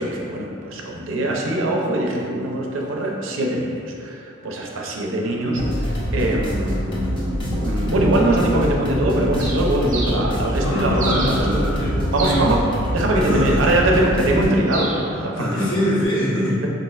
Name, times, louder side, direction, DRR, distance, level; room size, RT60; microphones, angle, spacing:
voice 1, 0.0-7.3 7.6-11.5 12.1-12.6 12.9-15.6, right 1 dB, 90° right, -1 dB, 0.5 m, -22 dB
sound 1, 5.6-14.5, equal, 25° left, 0.6 m, -25 dB
Bird, 9.4-16.0, right 2 dB, 45° right, 0.6 m, -35 dB
voice 2, 10.6-12.5 13.1-13.6 15.4-16.7, equal, 75° left, -8 dB, 0.9 m, -23 dB
4.1 x 2.4 x 2.3 m, 2.5 s
head